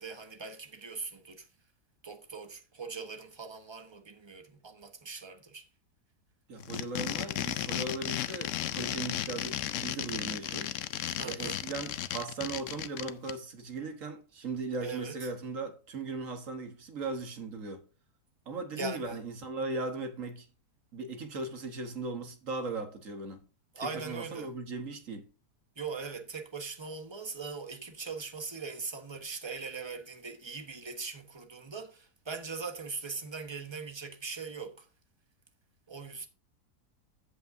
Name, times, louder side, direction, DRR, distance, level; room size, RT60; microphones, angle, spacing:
voice 1, 0.0-1.5 2.0-5.6 11.2-11.6 14.8-15.3 18.7-19.2 23.7-24.5 25.8-34.9 35.9-36.3, right 4 dB, 20° right, 1.1 m, -40 dB
voice 2, 6.5-10.7 11.2-17.8 18.5-20.5 20.9-23.4 23.8-25.3, right 3 dB, 55° right, 1.6 m, -38 dB
sound 1, 6.6-13.3, left 11 dB, 65° left, 0.8 m, -34 dB
16.0 x 5.5 x 2.6 m
omnidirectional pair, 1.7 m